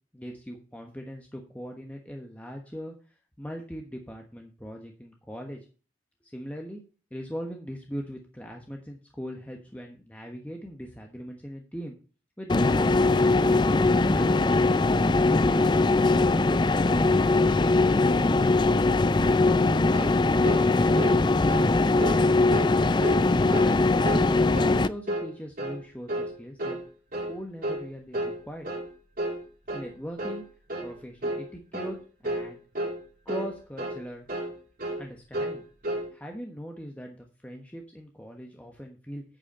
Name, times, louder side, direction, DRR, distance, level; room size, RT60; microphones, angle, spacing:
voice 1, 0.1-2.9 3.4-5.6 6.2-6.8 7.1-12.0 12.4-13.6 14.1-14.6 18.6-20.3 23.6-24.0 24.5-26.8 27.3-28.7 29.7-30.4 30.8-32.0 32.2-32.6 33.2-34.3 35.0-35.6 36.1-39.2, equal, 10° left, 2 dB, 1.3 m, -40 dB
sound 1, 12.5-24.9, left 3 dB, 25° left, 0.4 m, -21 dB
sound 2, 19.9-20.2 20.4-20.7 21.0-21.2 21.5-21.7 22.0-22.2 22.5-22.7 23.0-23.2 23.5-23.8 24.0-24.3 24.5-24.8 25.1-25.3 25.6-25.8 26.1-26.3 26.6-26.8 27.1-27.4 27.6-27.8 28.1-28.4 28.6-28.9 29.2-29.4 29.7-29.9 30.2-30.4 30.7-30.9 31.2-31.4 31.7-32.0 32.2-32.5 32.8-33.0 33.3-33.5 33.8-34.0 34.3-34.5 34.8-35.0 35.3-35.6 35.8-36.1, right 1 dB, 50° right, 3.2 m, -32 dB
9.0 x 8.3 x 4.3 m, 0.35 s
head